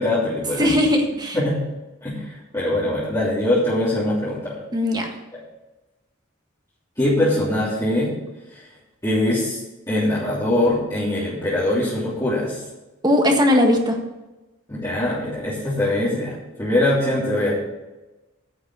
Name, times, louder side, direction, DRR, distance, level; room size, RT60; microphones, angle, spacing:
voice 1, 0.0-0.7 1.3-1.6 2.0-4.6 5.3-5.4 7.0-8.1 8.5-8.7 9.0-9.6 9.9-12.6 14.7-17.5, left 1 dB, 15° left, -10 dB, 3.2 m, -22 dB
voice 2, 0.6-1.4 4.7-5.1 13.0-14.0, left 1 dB, 20° right, 2 dB, 1.5 m, -18 dB
10.0 x 6.6 x 8.6 m, 1.1 s
head